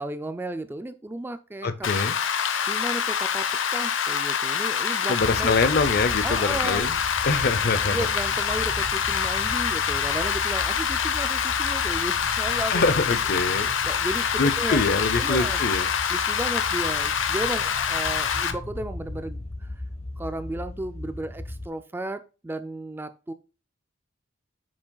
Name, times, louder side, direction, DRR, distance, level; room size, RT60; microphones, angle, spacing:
voice 1, 0.0-1.7 2.7-5.5 6.2-6.9 7.9-12.8 13.8-14.8 15.2-15.6 16.1-19.7 20.2-23.3, right 1 dB, 10° right, 11 dB, 0.3 m, -34 dB
voice 2, 1.6-2.2 5.1-7.0 7.2-8.1 12.7-13.7 14.4-15.9, left 3 dB, 55° left, 13 dB, 0.7 m, -24 dB
Rain, 1.8-18.5, left 7 dB, 90° left, 0.8 m, -26 dB
sound 1, 5.2-21.7, left 1 dB, 35° left, 1.2 m, -37 dB
8.4 x 6.2 x 2.3 m, 0.33 s
head